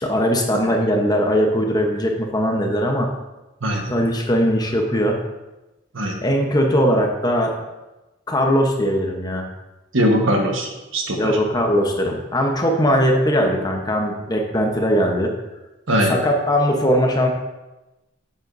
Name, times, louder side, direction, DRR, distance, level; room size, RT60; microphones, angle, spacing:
voice 1, 0.0-3.1 3.9-5.2 6.2-7.5 8.3-9.5 11.2-15.3 16.1-17.3, equal, 20° left, 2 dB, 0.9 m, -20 dB
voice 2, 9.9-11.4 15.9-16.2, equal, 75° right, 1 dB, 1.3 m, -20 dB
8.0 x 7.8 x 2.6 m, 1.0 s
head